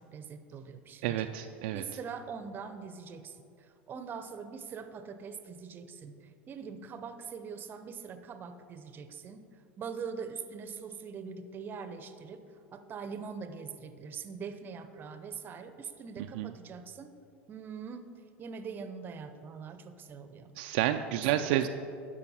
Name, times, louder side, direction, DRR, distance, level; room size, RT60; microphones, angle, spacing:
voice 1, 0.0-1.3 1.7-9.5 9.8-12.4 12.7-17.1 17.5-18.1 18.4-20.5 21.1-21.6, right 6 dB, 35° right, 10 dB, 0.7 m, -43 dB
voice 2, 1.0-1.8 16.4-16.5 20.6-21.7, right 12 dB, 65° right, 6 dB, 0.3 m, -29 dB
12.0 x 5.3 x 4.2 m, 2.6 s
hypercardioid pair, 90°, 6 cm